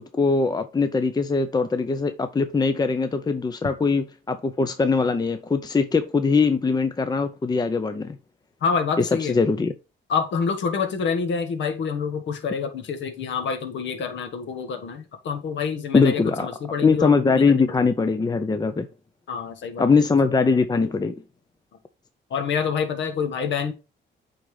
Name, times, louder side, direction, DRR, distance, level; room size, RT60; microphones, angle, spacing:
voice 1, 0.1-8.2 9.0-9.7 15.9-16.5 16.8-18.9 19.8-21.1, left 4 dB, 20° left, 0.6 m, -21 dB
voice 2, 8.6-9.3 10.1-17.9 19.3-19.9 22.3-23.7, left 6 dB, 70° left, 1.4 m, -27 dB
8.5 x 3.9 x 3.3 m
cardioid pair, 90°, 20 cm